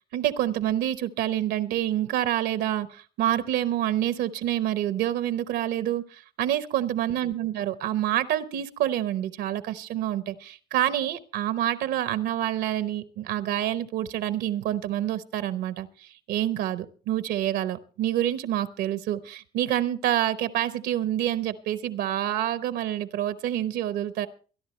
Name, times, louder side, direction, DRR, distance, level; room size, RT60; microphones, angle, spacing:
voice 1, 0.1-24.3, right 12 dB, 80° right, 13 dB, 0.9 m, -27 dB
23.0 x 11.0 x 3.2 m, 0.39 s
cardioid pair, 110°, 17 cm